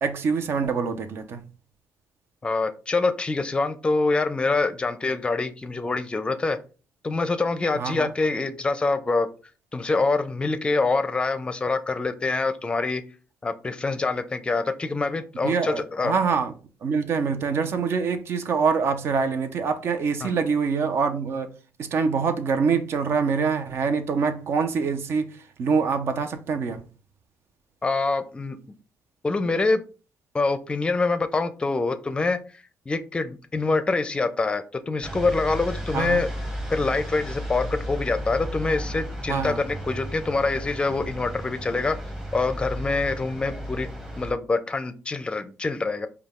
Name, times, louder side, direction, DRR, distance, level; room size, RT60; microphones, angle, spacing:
voice 1, 0.0-1.4 7.7-8.1 15.4-16.5 16.8-21.5 21.8-26.8 35.9-36.2 39.3-39.6, right 5 dB, 60° right, 0.8 m, -25 dB
voice 2, 2.4-6.6 7.0-9.3 9.7-13.0 13.4-16.1 20.2-20.3 27.8-28.6 29.2-29.8 30.3-32.4 32.9-36.3 36.7-42.0 42.3-43.9 44.2-46.1, left 3 dB, 20° left, 0.5 m, -25 dB
sound 1, 35.0-44.3, equal, 10° right, 1.0 m, -34 dB
5.0 x 2.3 x 3.7 m
cardioid pair, 100°, 5 cm